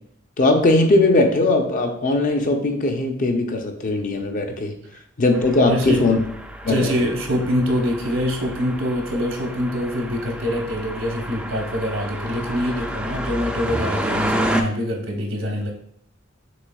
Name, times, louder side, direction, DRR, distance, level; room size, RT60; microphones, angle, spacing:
voice 1, 0.4-4.7 5.2-6.2 6.6-6.9, left 2 dB, 40° left, 4 dB, 0.6 m, -19 dB
sound 1, 5.3-14.6, right 1 dB, 5° right, 0.3 m, -30 dB
voice 2, 5.6-6.1 6.7-15.7, equal, 70° right, 1 dB, 0.9 m, -24 dB
6.1 x 3.3 x 2.3 m, 0.68 s
head